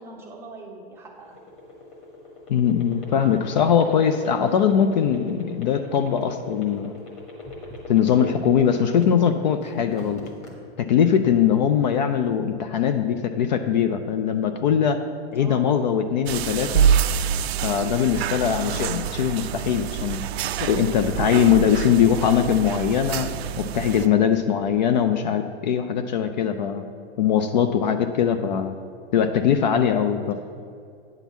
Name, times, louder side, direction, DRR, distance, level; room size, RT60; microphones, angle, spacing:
voice 1, 0.0-1.4 11.6-12.1 15.4-16.0 18.3-18.8 24.9-25.2 30.2-30.3, right 2 dB, 5° right, -2 dB, 0.6 m, -42 dB
sound 1, 1.1-9.4 9.7-10.5, left 3 dB, 20° left, 1.4 m, -39 dB
voice 2, 2.5-7.0 7.9-10.2 10.8-15.0 15.3-16.9 17.6-20.2 20.6-23.3 23.6-26.9 27.2-28.8 29.1-30.3, left 8 dB, 45° left, 8 dB, 0.4 m, -21 dB
sound 2, 16.3-24.1, right 8 dB, 70° right, 0.5 m, -26 dB
9.2 x 3.9 x 7.0 m, 2.3 s
hypercardioid pair, 160°, 33 cm